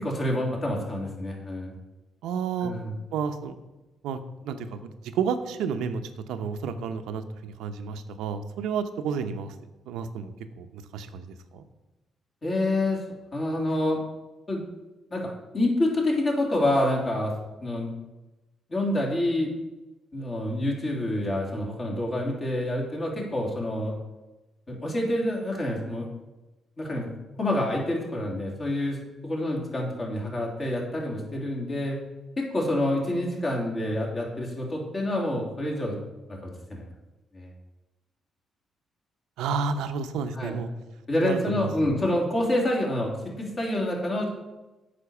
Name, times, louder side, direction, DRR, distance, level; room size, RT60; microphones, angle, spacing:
voice 1, 0.0-1.7 2.6-2.9 12.4-13.0 13.3-14.0 14.5-14.6 15.1-17.3 17.6-17.9 18.7-19.5 20.1-23.9 24.7-26.1 26.8-27.1 27.4-32.0 32.4-36.0 36.3-36.8 37.3-37.5 40.3-40.5 41.1-44.3, left 1 dB, 35° left, -1 dB, 3.1 m, -27 dB
voice 2, 2.2-2.7 3.1-3.6 4.0-4.2 4.4-6.0 6.3-9.5 9.9-11.6 39.4-40.7 41.2-41.7, right 6 dB, 90° right, 8 dB, 0.7 m, -31 dB
8.5 x 5.2 x 7.0 m, 1.1 s
cardioid pair, 90°, 0 cm